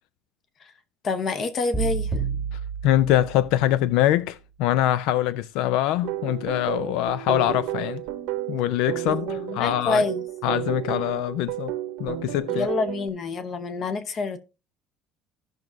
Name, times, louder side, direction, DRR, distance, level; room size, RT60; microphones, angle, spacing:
voice 1, 1.0-2.1 9.1-10.2 12.5-14.4, left 4 dB, 30° left, 0.8 m, -27 dB
sound 1, 1.7-3.9, right 6 dB, 5° left, 1.4 m, -30 dB
voice 2, 2.8-8.0 8.5-10.0 10.4-11.7 12.0-12.7, left 13 dB, 70° left, 0.4 m, -23 dB
sound 2, 6.0-13.1, right 14 dB, 85° right, 0.9 m, -32 dB
16.0 x 6.0 x 2.5 m
cardioid pair, 175°, 0 cm